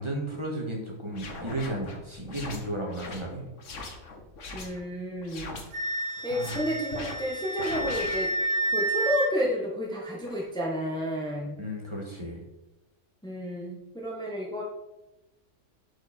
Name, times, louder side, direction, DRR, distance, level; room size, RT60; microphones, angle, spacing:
voice 1, 0.0-3.4 6.3-6.6 11.6-12.4, right 1 dB, 25° right, -1 dB, 1.9 m, -34 dB
sound 1, 1.1-4.8 5.2-5.7 6.2-6.6 6.9-7.2 7.6-8.7 9.3-9.5 10.2-10.5, left 3 dB, 80° left, 1.6 m, -41 dB
voice 2, 4.5-5.5 6.2-8.3 8.7-11.6 13.2-14.6, equal, 5° left, -3 dB, 1.4 m, -31 dB
Wind instrument woodwind instrument, 5.7-9.3, right 2 dB, 85° right, 1.8 m, -30 dB
11.5 x 5.3 x 4.3 m, 0.99 s
omnidirectional pair, 1.3 m